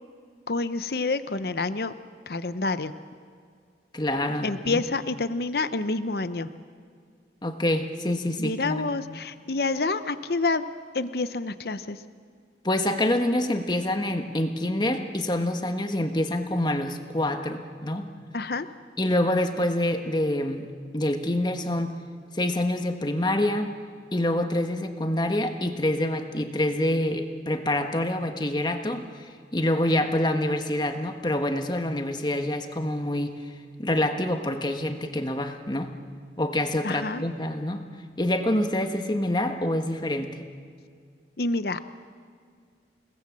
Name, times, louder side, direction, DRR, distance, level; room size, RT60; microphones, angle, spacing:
voice 1, 0.5-1.9 2.3-2.9 4.4-6.5 8.4-10.6 10.9-12.0 18.3-18.7 36.8-37.2 41.4-41.8, left 3 dB, 60° left, 12 dB, 0.8 m, -28 dB
voice 2, 3.9-4.8 7.4-8.9 12.6-18.1 19.0-20.7 20.9-21.9 22.3-23.7 24.1-33.4 33.8-35.9 36.4-37.8 38.2-40.3, left 1 dB, 25° left, 6 dB, 1.4 m, -26 dB
29.5 x 19.0 x 7.6 m, 2.1 s
head